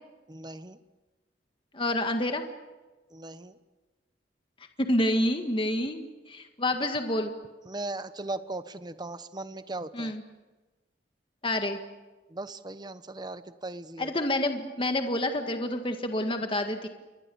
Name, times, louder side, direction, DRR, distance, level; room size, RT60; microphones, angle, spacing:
voice 1, 0.3-0.8 3.1-3.6 7.6-10.1 12.3-14.1, right 2 dB, 25° right, 12 dB, 1.0 m, -38 dB
voice 2, 1.7-2.4 4.8-6.0 6.3-7.3 9.9-10.2 11.4-11.8 14.0-16.9, left 1 dB, 30° left, 6 dB, 1.8 m, -28 dB
29.0 x 23.5 x 7.1 m, 1.2 s
head